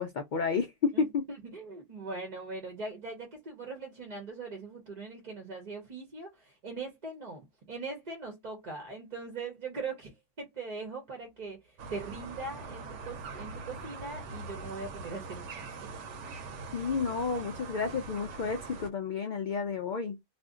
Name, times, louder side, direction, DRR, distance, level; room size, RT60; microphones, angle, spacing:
voice 1, 0.0-1.2 16.7-20.2, left 5 dB, 65° left, 0.4 m, -31 dB
voice 2, 0.9-15.9, right 3 dB, 40° right, 0.7 m, -41 dB
sound 1, 11.8-18.9, right 4 dB, 75° right, 0.9 m, -42 dB
2.4 x 2.1 x 3.6 m
omnidirectional pair, 1.3 m